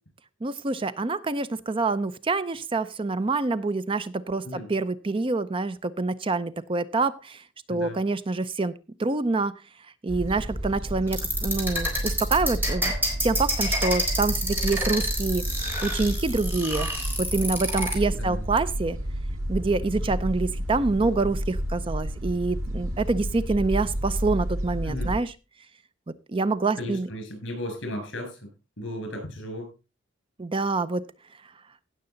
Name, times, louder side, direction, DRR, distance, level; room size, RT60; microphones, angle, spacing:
voice 1, 0.4-9.5 10.0-12.9 13.2-15.4 15.8-16.9 17.2-19.0 19.5-25.3 26.1-27.1 30.4-31.0, right 3 dB, 25° right, 14 dB, 0.5 m, -26 dB
voice 2, 7.7-8.0 18.2-18.4 24.8-25.1 26.8-28.4 28.8-29.7, left 1 dB, 65° left, 5 dB, 6.2 m, -35 dB
sound 1, 10.1-25.2, equal, 90° right, 2.8 m, -31 dB
sound 2, 11.1-17.9, equal, 10° right, 3.7 m, -28 dB
16.5 x 6.8 x 3.9 m, 0.29 s
head